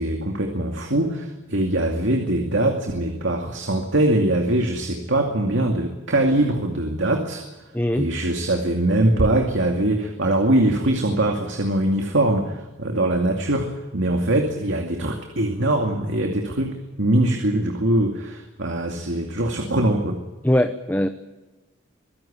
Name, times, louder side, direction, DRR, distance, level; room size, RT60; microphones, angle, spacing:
voice 1, 0.0-7.4 8.0-20.2, right 1 dB, 70° right, 3 dB, 2.4 m, -22 dB
voice 2, 7.7-8.1 20.4-21.1, left 1 dB, 10° left, 9 dB, 0.8 m, -21 dB
24.0 x 15.5 x 8.8 m, 1.2 s
head